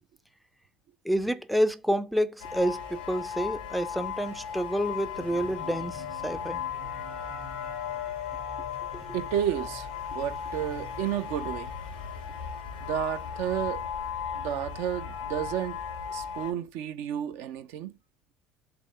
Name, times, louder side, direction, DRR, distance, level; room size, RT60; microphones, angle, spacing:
voice 1, 1.0-6.6 8.9-9.1, equal, ahead, 0.4 m, -29 dB
sound 1, 2.4-16.5, left 8 dB, 85° left, 0.6 m, -36 dB
sound 2, 5.2-13.7, left 1 dB, 85° right, 1.6 m, -49 dB
voice 2, 9.1-11.7 12.8-13.9 14.3-15.8 16.1-17.9, right 10 dB, 65° right, 0.4 m, -31 dB
3.4 x 3.4 x 3.0 m
hypercardioid pair, 65°, 5 cm